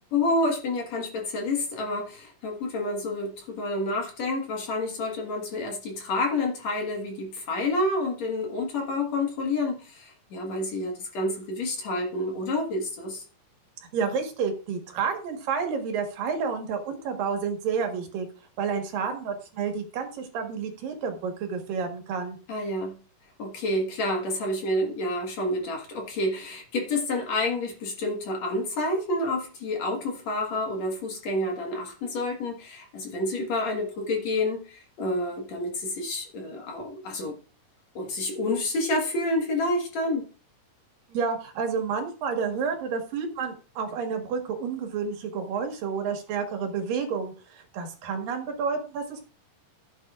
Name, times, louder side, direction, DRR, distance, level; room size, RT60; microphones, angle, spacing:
voice 1, 0.1-13.2 22.5-23.0 23.4-37.4 37.9-40.3, left 2 dB, 55° left, 1 dB, 2.6 m, -29 dB
voice 2, 13.9-18.3 18.6-22.4 41.1-49.2, right 6 dB, 80° right, 4 dB, 3.4 m, -30 dB
15.5 x 8.2 x 2.4 m, 0.37 s
omnidirectional pair, 3.9 m